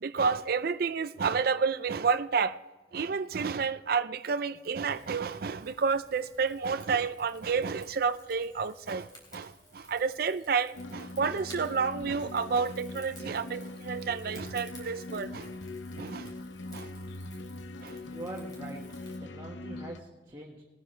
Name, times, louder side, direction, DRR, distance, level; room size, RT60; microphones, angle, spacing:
voice 1, 0.0-2.6 2.9-15.5 16.0-16.3 16.7-16.9 17.8-18.0, right 5 dB, 50° right, 0.4 m, -30 dB
Rain / Fire, 4.9-19.2, left 1 dB, 20° left, 3.8 m, -55 dB
sound 1, 10.8-20.0, left 2 dB, 80° left, 0.7 m, -42 dB
voice 2, 18.0-20.6, right 2 dB, 20° right, 1.7 m, -43 dB
20.0 x 9.7 x 3.3 m
head